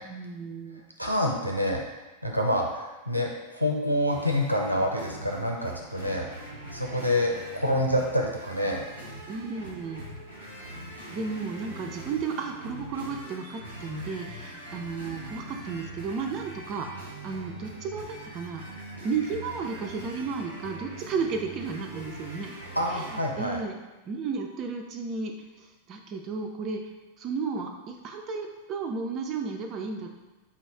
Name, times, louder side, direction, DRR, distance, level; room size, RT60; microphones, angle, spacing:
voice 1, 0.0-0.8 9.3-10.0 11.1-18.6 19.0-22.5 22.9-23.8 24.1-26.8 27.2-30.1, right 5 dB, 35° right, 2 dB, 0.5 m, -33 dB
voice 2, 1.0-1.8 2.2-6.3 6.7-8.8 22.8-23.6, left 1 dB, 90° right, 1 dB, 0.6 m, -27 dB
sound 1, 4.1-23.2, right 1 dB, 85° left, 1.1 m, -42 dB
4.2 x 3.1 x 4.0 m, 1.2 s
figure-of-eight pair, 90°, 0 cm